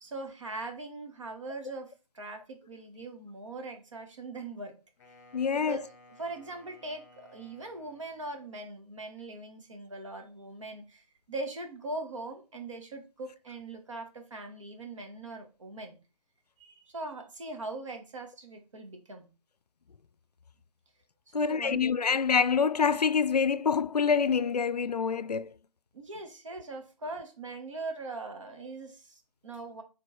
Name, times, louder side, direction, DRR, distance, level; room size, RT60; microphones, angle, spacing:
voice 1, 0.0-4.7 5.5-5.9 6.2-16.0 16.6-19.3 21.3-21.9 25.9-29.8, right 2 dB, 50° right, 2.0 m, -41 dB
Wind instrument woodwind instrument, 5.0-8.5, left 2 dB, 25° left, 1.1 m, -57 dB
voice 2, 5.3-5.8 21.3-25.5, left 6 dB, 80° left, 0.5 m, -26 dB
6.1 x 3.9 x 4.4 m
figure-of-eight pair, 155°, 20 cm